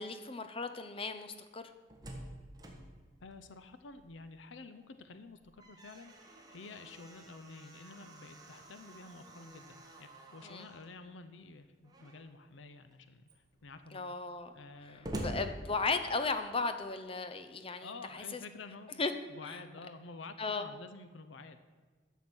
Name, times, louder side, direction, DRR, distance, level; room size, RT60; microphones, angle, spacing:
voice 1, 0.0-1.6 10.4-10.7 13.9-14.5 15.2-18.4 19.0-19.1 19.5-19.6 20.4-20.6, left 3 dB, 30° left, 9 dB, 0.7 m, -36 dB
Slam, 1.6-4.4 4.7-4.8 5.3-10.9 11.8-12.4 12.9-13.0 13.2-16.3, equal, 20° right, 1.6 m, -47 dB
voice 2, 3.2-14.1 14.5-15.5 17.8-21.7, left 3 dB, 75° left, 10 dB, 0.6 m, -50 dB
12.0 x 7.1 x 6.2 m, 1.5 s
head